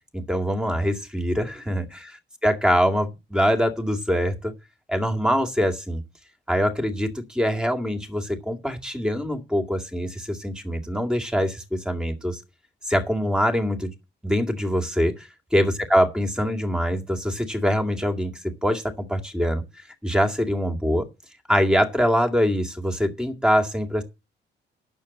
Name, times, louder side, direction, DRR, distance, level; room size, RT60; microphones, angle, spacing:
voice 1, 0.1-1.9 2.4-4.5 4.9-6.0 6.5-12.4 12.8-13.9 14.2-18.8 19.1-19.6 20.0-21.1 21.5-24.0, equal, 5° right, 2.2 m, -24 dB
8.9 x 7.0 x 8.3 m
cardioid pair, 90°, 20 cm